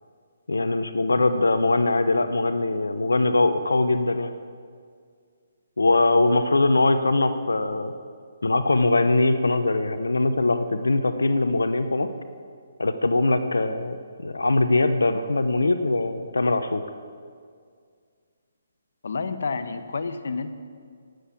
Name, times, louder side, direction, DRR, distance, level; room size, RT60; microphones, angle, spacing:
voice 1, 0.5-4.3 5.8-7.9 8.4-12.1 12.8-16.8, left 2 dB, 90° left, 10 dB, 0.9 m, -22 dB
voice 2, 19.0-20.5, left 4 dB, 70° left, 10 dB, 1.2 m, -30 dB
18.0 x 7.9 x 8.5 m, 2.1 s
hypercardioid pair, 150°, 0 cm